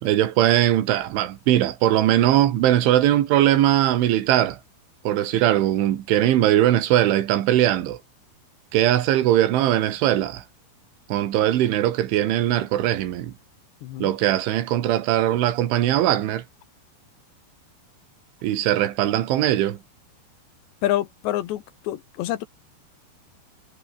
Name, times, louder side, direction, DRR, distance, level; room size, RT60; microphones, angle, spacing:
voice 1, 0.0-4.6 5.1-8.0 8.7-10.4 11.1-13.3 14.0-16.4 18.4-19.8, right 12 dB, 75° right, 4.2 m, -20 dB
voice 2, 13.8-14.1 20.8-22.5, left 13 dB, 70° left, 3.2 m, -27 dB
omnidirectional pair, 5.8 m